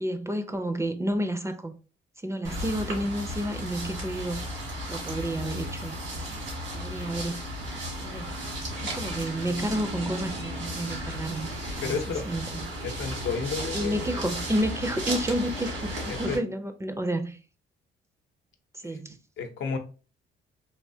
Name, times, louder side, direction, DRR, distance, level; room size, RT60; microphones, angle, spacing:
voice 1, 0.0-1.7 2.2-4.4 4.9-6.4 6.7-7.4 8.0-8.3 8.8-11.5 11.8-12.0 12.3-12.6 13.7-17.4 18.7-19.2, right 1 dB, 15° right, 0.4 m, -30 dB
sound 1, 2.4-16.4, equal, 85° right, 1.8 m, -34 dB
voice 2, 11.8-12.3 12.8-14.1 16.1-16.4 18.8-19.0 19.4-19.8, left 5 dB, 70° left, 0.7 m, -32 dB
3.4 x 2.7 x 2.7 m
cardioid pair, 90°, 20 cm